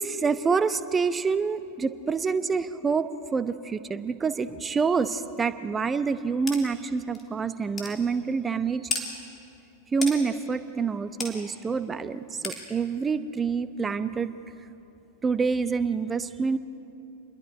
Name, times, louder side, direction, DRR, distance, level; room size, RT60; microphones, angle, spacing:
voice 1, 0.0-8.9 9.9-14.3 15.2-16.6, right 5 dB, 15° right, 13 dB, 0.9 m, -27 dB
sound 1, 6.5-6.6 7.1-7.2 7.8-7.9 8.9-9.1 10.0-10.2 11.2-11.3 12.4-12.6, left 4 dB, 20° left, 3.5 m, -31 dB
28.5 x 22.0 x 5.1 m, 2.8 s
figure-of-eight pair, 90°, 0 cm